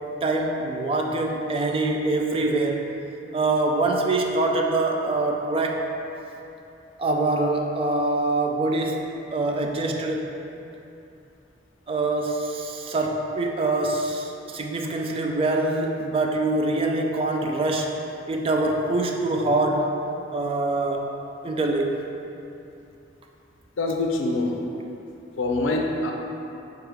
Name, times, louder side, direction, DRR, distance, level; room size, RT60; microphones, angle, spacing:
voice 1, 0.2-2.9 3.3-5.9 7.0-10.3 11.9-17.9 18.3-19.9 20.3-21.1 21.4-22.0, right 2 dB, 30° right, 1 dB, 0.3 m, -24 dB
voice 2, 23.8-24.5 25.4-26.1, left 2 dB, 85° left, 1 dB, 0.5 m, -24 dB
4.7 x 2.3 x 4.7 m, 2.8 s
head